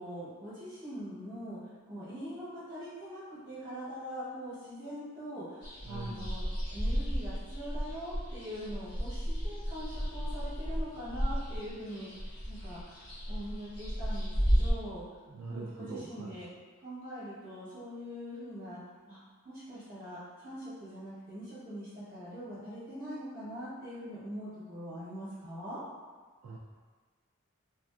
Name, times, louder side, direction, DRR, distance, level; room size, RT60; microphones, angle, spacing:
voice 1, 0.0-15.0 15.5-16.5 16.8-18.8 19.1-19.2 19.4-25.8, equal, 35° right, -13 dB, 1.0 m, -43 dB
sound 1, 5.6-14.7, equal, 90° left, 1.2 m, -33 dB
voice 2, 5.9-6.4 15.3-16.4 26.4-26.6, right 3 dB, 85° right, -4 dB, 0.3 m, -41 dB
3.4 x 2.4 x 2.4 m, 1.4 s
head